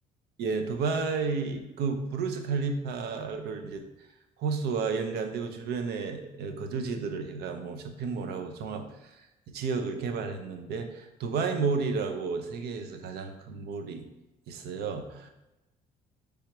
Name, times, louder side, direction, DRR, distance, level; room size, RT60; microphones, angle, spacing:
voice 1, 0.4-3.8 4.4-9.1 9.5-14.0 14.5-15.3, right 4 dB, 70° right, 6 dB, 0.6 m, -32 dB
4.5 x 3.5 x 3.0 m, 0.97 s
cardioid pair, 110°, 17 cm